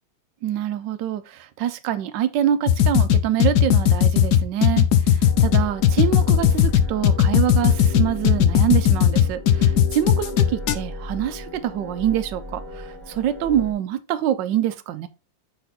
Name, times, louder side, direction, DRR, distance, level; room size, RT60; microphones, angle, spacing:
voice 1, 0.4-4.9 5.1-15.1, right 10 dB, 75° right, 1.3 m, -25 dB
sound 1, 2.7-10.7, left 9 dB, 70° left, 1.1 m, -16 dB
sound 2, 5.2-13.7, left 2 dB, 50° left, 2.2 m, -36 dB
5.9 x 4.0 x 4.0 m
omnidirectional pair, 2.0 m